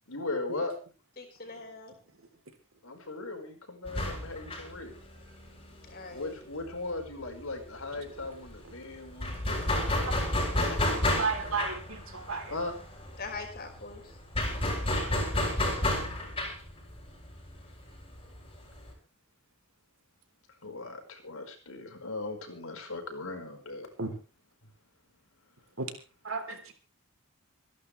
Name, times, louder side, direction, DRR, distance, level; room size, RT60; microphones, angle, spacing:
voice 1, 0.1-0.7 2.8-4.9 6.1-10.5 12.5-12.7 14.8-15.6 20.6-23.9 24.6-24.7, left 2 dB, 80° left, 4 dB, 5.2 m, -38 dB
voice 2, 1.2-1.9 5.9-6.3 10.5-10.8 13.2-14.1, left 3 dB, 45° left, 3 dB, 5.4 m, -42 dB
sound 1, 3.9-7.3 7.5-7.7 7.9-18.9, left 1 dB, 25° left, 6.8 m, -31 dB
voice 3, 10.9-12.5 24.0-24.1 25.8-25.9 26.2-26.6, right 4 dB, 70° right, 6 dB, 3.5 m, -33 dB
27.0 x 11.5 x 3.3 m, 0.34 s
head